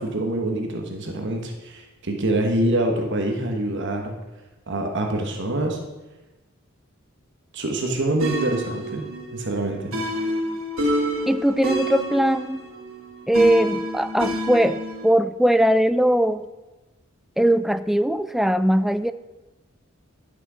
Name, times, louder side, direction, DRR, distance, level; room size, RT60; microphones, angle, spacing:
voice 1, 0.0-4.1 4.7-5.8 7.5-9.0 9.3-9.9, right 1 dB, 60° right, 3 dB, 1.2 m, -25 dB
sound 1, 8.2-15.1, equal, 85° right, 1.9 m, -28 dB
voice 2, 11.3-12.6 13.3-16.5 17.4-19.1, right 1 dB, ahead, 13 dB, 0.3 m, -20 dB
11.5 x 6.0 x 6.2 m, 1.1 s
head